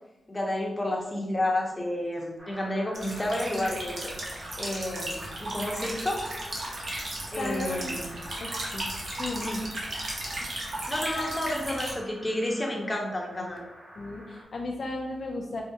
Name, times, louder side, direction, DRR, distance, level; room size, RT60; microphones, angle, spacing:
voice 1, 0.3-4.1 4.6-6.3 7.3-8.1 9.4-9.6 10.9-13.6, left 1 dB, 20° left, -1 dB, 0.8 m, -30 dB
sound 1, 2.4-14.4, right 1 dB, 25° right, 1.0 m, -48 dB
sound 2, 2.9-11.9, right 1 dB, 60° right, 0.9 m, -35 dB
voice 2, 7.1-7.9 8.4-8.9 9.2-9.6 10.4-10.6 14.0-15.6, left 2 dB, 60° left, 0 dB, 0.4 m, -35 dB
4.6 x 2.1 x 2.8 m, 0.97 s
cardioid pair, 75°, 0 cm